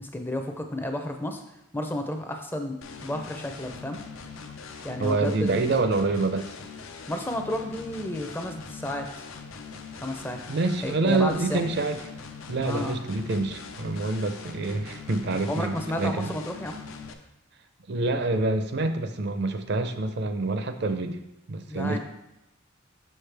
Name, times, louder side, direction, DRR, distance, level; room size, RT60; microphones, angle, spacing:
voice 1, 0.0-1.4 1.7-4.0 4.8-5.7 7.1-9.1 10.0-10.4 10.8-11.6 12.6-13.0 15.4-16.8 21.6-22.0, left 1 dB, 10° left, 4 dB, 0.5 m, -32 dB
sound 1, 2.8-17.1, left 5 dB, 80° left, 0.6 m, -42 dB
voice 2, 5.0-6.5 10.5-12.0 12.5-16.3 17.9-21.2 21.5-22.0, right 3 dB, 55° right, 8 dB, 0.5 m, -26 dB
6.5 x 6.2 x 3.3 m, 0.89 s
head